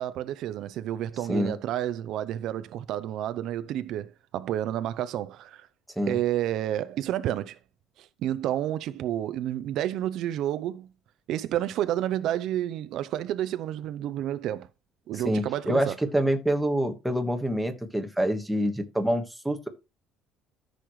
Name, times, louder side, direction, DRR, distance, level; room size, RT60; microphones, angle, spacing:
voice 1, 0.0-5.7 6.1-7.6 8.0-10.9 11.3-14.7 15.1-16.0, right 12 dB, 55° right, 0.5 m, -30 dB
voice 2, 15.1-19.7, equal, 5° right, 1.4 m, -26 dB
14.0 x 6.5 x 3.1 m
cardioid pair, 170°, 0 cm